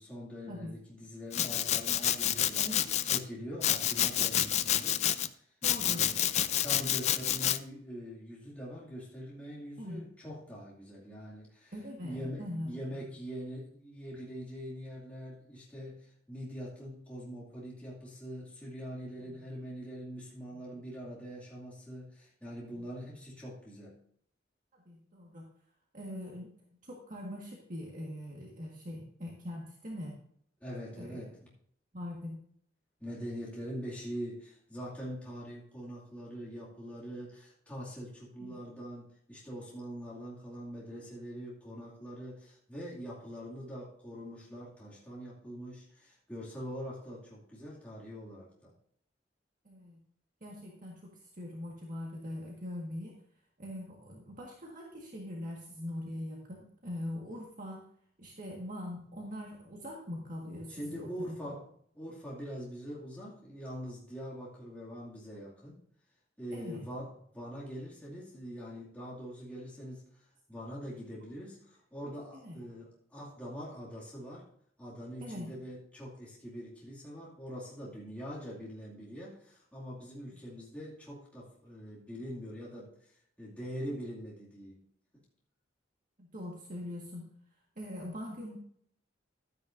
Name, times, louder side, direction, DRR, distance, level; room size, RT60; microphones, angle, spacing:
voice 1, 0.0-2.6 3.0-5.0 5.3-5.5 5.8-6.2 6.6-11.7 12.0-24.0 30.6-31.5 33.0-48.7 60.7-61.7 61.9-65.8 66.4-70.1 70.5-74.5 74.8-82.9 83.4-84.8, equal, 10° left, -7 dB, 2.4 m, -43 dB
Domestic sounds home sounds, 1.3-3.2 3.6-5.3 5.6-7.6, left 11 dB, 35° left, 0.4 m, -29 dB
voice 2, 2.5-2.9 5.6-6.0 9.8-10.0 11.7-12.8 20.5-20.6 24.7-25.4 25.9-26.5 26.8-30.1 31.0-31.2 31.9-32.4 38.4-38.6 49.6-50.0 50.4-53.1 53.6-57.8 58.2-61.4 66.5-66.8 72.4-72.6 75.2-75.5 80.3-80.4 86.2-87.2 87.8-88.6, left 1 dB, 45° right, -2 dB, 1.7 m, -42 dB
12.0 x 9.6 x 2.6 m, 0.65 s
head